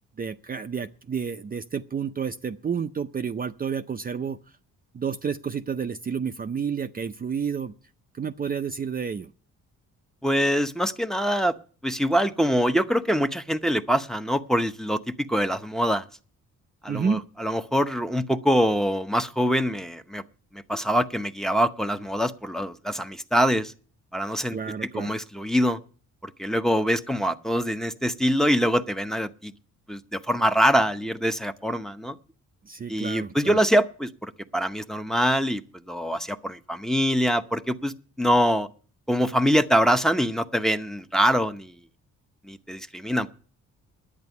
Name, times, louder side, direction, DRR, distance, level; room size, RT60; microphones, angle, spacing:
voice 1, 0.2-4.4 4.9-7.7 8.2-9.3 16.9-17.2 24.5-25.1 32.6-33.6, right 6 dB, 30° right, 8 dB, 0.6 m, -30 dB
voice 2, 10.2-11.5 11.8-16.0 16.8-20.2 20.5-23.7 24.1-24.6 24.9-25.8 26.4-29.5 29.9-32.2 32.9-35.6 35.9-38.7 39.1-41.7 42.4-43.3, equal, ahead, 7 dB, 0.8 m, -24 dB
10.5 x 8.9 x 8.3 m, 0.41 s
cardioid pair, 90°, 30 cm